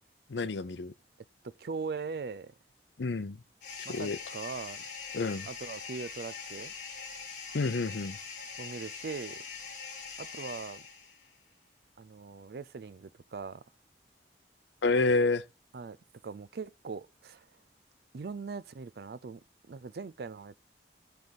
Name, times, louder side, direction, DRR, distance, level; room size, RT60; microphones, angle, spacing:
voice 1, 0.3-0.9 3.0-3.4 3.9-4.2 5.1-5.5 7.5-8.2 14.8-15.4, left 3 dB, 80° left, 0.6 m, -28 dB
voice 2, 1.4-2.5 3.8-4.8 5.4-6.7 8.6-9.4 10.2-10.8 12.0-13.6 15.7-16.0 16.2-17.5 18.1-19.4 19.7-20.5, right 4 dB, 60° right, 0.4 m, -40 dB
sound 1, 3.6-11.3, left 5 dB, 45° left, 1.9 m, -43 dB
9.4 x 3.5 x 4.1 m
head